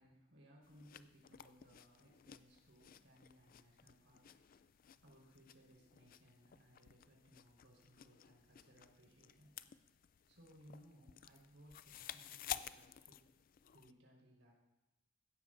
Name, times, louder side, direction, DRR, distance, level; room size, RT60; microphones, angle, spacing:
voice 1, 0.0-9.9 10.3-13.2 13.7-14.5, equal, 90° right, -2 dB, 4.4 m, -65 dB
sound 1, 0.6-13.9, left 10 dB, 50° left, 0.4 m, -53 dB
16.5 x 12.5 x 2.6 m, 0.95 s
head